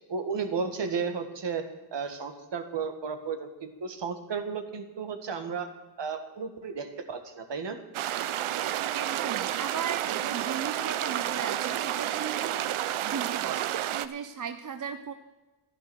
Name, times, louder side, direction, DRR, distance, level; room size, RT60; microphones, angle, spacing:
voice 1, 0.1-1.7 1.9-5.7 6.0-7.8, right 5 dB, 60° right, 7 dB, 1.8 m, -33 dB
sound 1, 7.9-14.1, right 12 dB, 85° right, 0.7 m, -30 dB
voice 2, 8.9-12.7 13.0-15.1, right 7 dB, 40° right, 8 dB, 0.8 m, -37 dB
12.0 x 11.0 x 6.3 m, 1.2 s
cardioid pair, 70°, 48 cm